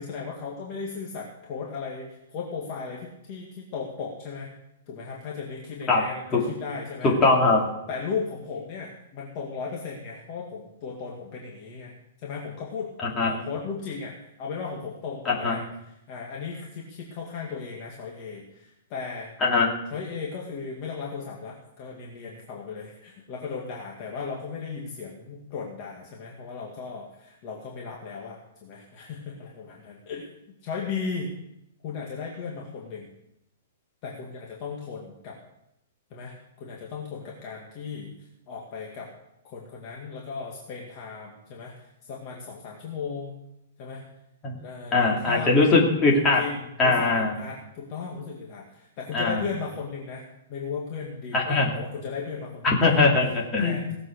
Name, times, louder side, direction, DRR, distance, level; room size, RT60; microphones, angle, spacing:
voice 1, 0.0-4.5 4.9-7.1 7.9-11.9 12.2-15.6 16.1-19.3 19.9-30.3 30.6-31.3 31.8-33.1 34.0-35.4 36.1-38.1 38.5-39.1 39.4-41.7 42.0-43.4 43.8-44.0 44.6-45.8 46.1-53.0 53.6-53.9, left 5 dB, 35° left, -2 dB, 2.2 m, -36 dB
voice 2, 7.0-7.6 13.0-13.3 15.2-15.6 19.4-19.7 44.4-44.6 44.9-46.4 46.8-47.3 49.1-49.4 51.3-51.7 52.6-53.8, left 3 dB, 15° left, -2 dB, 2.8 m, -21 dB
18.5 x 7.8 x 6.5 m, 0.83 s
hypercardioid pair, 165°, 0 cm